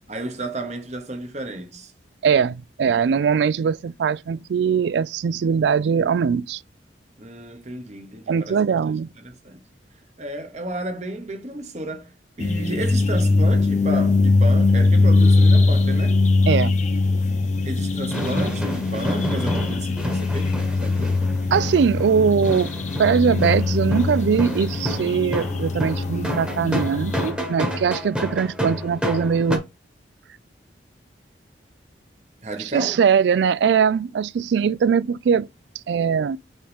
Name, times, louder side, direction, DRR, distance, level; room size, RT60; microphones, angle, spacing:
voice 1, 0.1-1.9 7.2-8.6 9.2-9.6 10.2-16.2 17.6-21.2 32.4-33.0, right 2 dB, 40° right, 1.1 m, -32 dB
voice 2, 2.2-6.6 8.3-9.1 16.5-16.7 21.5-22.7 23.0-29.6 32.6-35.5 35.9-36.4, right 6 dB, 75° right, 0.3 m, -21 dB
sound 1, 12.4-27.3, left 3 dB, 40° left, 0.8 m, -21 dB
sound 2, 18.1-29.6, equal, 5° right, 1.2 m, -30 dB
5.4 x 5.0 x 3.5 m
head